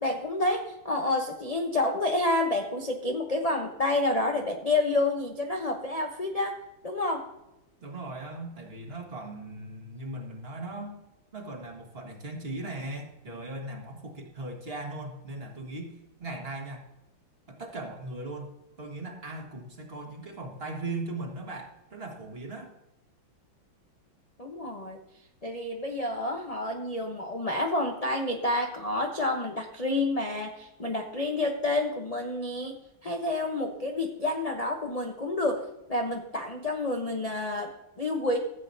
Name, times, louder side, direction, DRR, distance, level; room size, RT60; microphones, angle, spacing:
voice 1, 0.0-7.3 24.4-25.0 25.4-38.4, left 2 dB, 40° left, 1 dB, 0.5 m, -29 dB
voice 2, 7.8-11.0 11.3-16.8 17.5-18.5 18.8-22.7, right 2 dB, 30° right, 2 dB, 1.7 m, -38 dB
15.0 x 8.1 x 2.7 m, 0.93 s
omnidirectional pair, 2.2 m